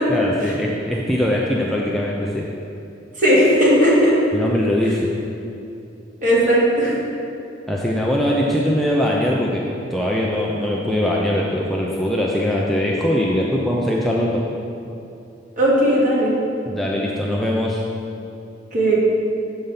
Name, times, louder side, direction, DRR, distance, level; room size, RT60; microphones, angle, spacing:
voice 1, 0.1-2.5 4.3-5.1 7.7-9.6 9.9-14.4 16.7-17.8, left 1 dB, ahead, -4 dB, 0.5 m, -21 dB
voice 2, 3.2-4.1 6.2-6.9 15.6-16.3 18.7-19.0, equal, 45° right, -6 dB, 2.1 m, -16 dB
7.8 x 5.3 x 5.7 m, 2.7 s
head